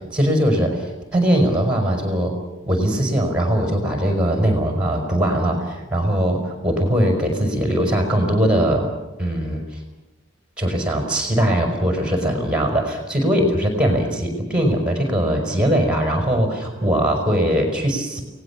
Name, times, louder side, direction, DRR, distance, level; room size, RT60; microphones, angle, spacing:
voice 1, 0.1-2.3 2.7-8.9 9.2-9.8 10.6-18.2, equal, 5° right, 3 dB, 4.9 m, -20 dB
29.0 x 19.0 x 7.2 m, 1.0 s
head